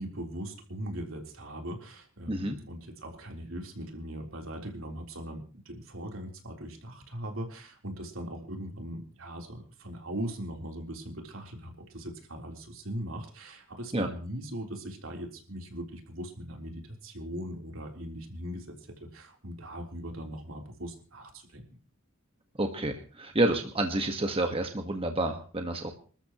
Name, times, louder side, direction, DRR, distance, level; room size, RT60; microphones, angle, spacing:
voice 1, 0.0-18.7 19.0-21.6, equal, 75° right, 2 dB, 3.8 m, -40 dB
voice 2, 22.6-25.9, right 1 dB, 25° right, 4 dB, 1.6 m, -29 dB
27.0 x 13.5 x 3.1 m, 0.39 s
head